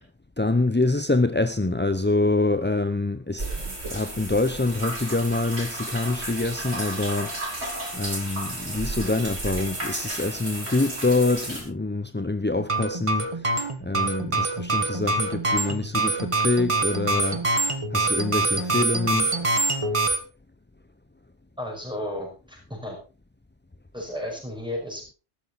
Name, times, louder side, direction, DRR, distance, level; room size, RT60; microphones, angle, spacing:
voice 1, 0.4-7.3 7.6-19.9, left 2 dB, 15° left, 0.4 m, -26 dB
sound 1, 3.4-11.6, right 1 dB, 60° right, 4.7 m, -33 dB
sound 2, 12.6-20.2, right 2 dB, 25° right, 1.5 m, -25 dB
voice 2, 21.6-23.0 23.9-25.1, left 1 dB, 5° right, 6.0 m, -34 dB
13.5 x 13.5 x 4.1 m
omnidirectional pair, 1.3 m